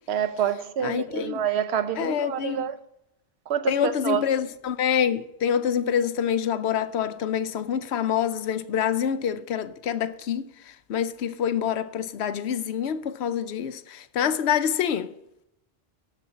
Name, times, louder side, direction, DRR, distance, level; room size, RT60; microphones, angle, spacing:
voice 1, 0.1-2.8 3.5-4.2, right 8 dB, 75° right, 0.9 m, -27 dB
voice 2, 0.8-1.4 2.0-2.7 3.7-15.1, left 8 dB, 85° left, 0.9 m, -26 dB
7.1 x 6.9 x 7.0 m
omnidirectional pair, 1.1 m